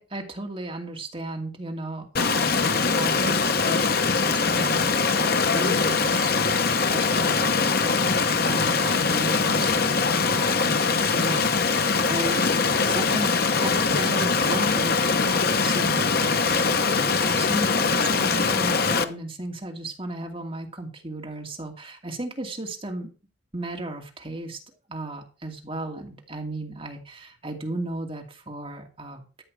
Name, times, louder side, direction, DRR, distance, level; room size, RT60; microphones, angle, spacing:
voice 1, 0.0-23.1 23.5-24.6 24.9-29.4, right 2 dB, 30° right, 2 dB, 2.6 m, -35 dB
Stream, 2.2-19.0, left 4 dB, 50° left, 1.0 m, -22 dB
13.5 x 8.7 x 4.8 m, 0.35 s
head